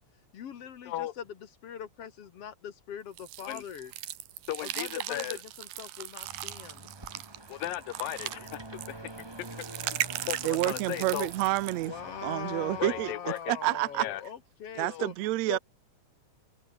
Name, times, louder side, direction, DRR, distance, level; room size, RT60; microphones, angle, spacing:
voice 1, 0.3-1.4 1.6-3.9 4.6-6.9 11.8-15.1 15.5-15.6, left 8 dB, 55° left, 2.1 m, -41 dB
sound 1, 3.2-11.9, right 14 dB, 90° right, 2.9 m, -38 dB
voice 2, 4.5-5.4 7.5-9.0 9.4-9.5 9.8-11.3 12.8-13.6 14.0-14.2 14.9-15.1, left 14 dB, 90° left, 2.9 m, -36 dB
sound 2, 6.2-13.2, right 2 dB, 15° right, 1.0 m, -46 dB
sound 3, 8.0-8.1 8.4-8.6 9.0-9.4 9.8-9.9 10.2-11.0 11.5-12.4 12.8-12.9 13.2-13.9 14.2-14.6, right 3 dB, 45° right, 8.4 m, -60 dB
voice 3, 10.4-11.9 12.2-13.1 13.5-14.1 14.8-15.6, right 17 dB, 70° right, 1.7 m, -29 dB
omnidirectional pair, 3.9 m